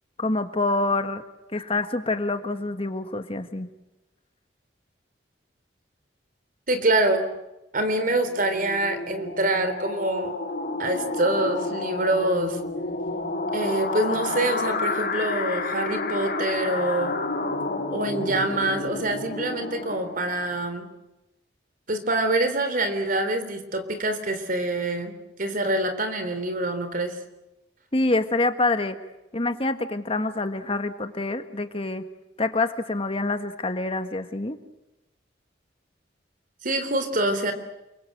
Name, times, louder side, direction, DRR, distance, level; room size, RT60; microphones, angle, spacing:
voice 1, 0.2-1.2 1.5-3.7 27.9-29.0 29.3-32.0 32.4-34.6, left 2 dB, 30° left, 8 dB, 1.6 m, -26 dB
voice 2, 6.7-7.2 7.7-10.4 10.8-12.6 13.5-17.2 17.9-20.9 21.9-27.2 36.6-37.5, right 1 dB, 50° right, 9 dB, 3.6 m, -25 dB
sound 1, 8.0-20.6, left 3 dB, 60° left, 3.5 m, -30 dB
29.5 x 23.0 x 7.9 m, 0.96 s
head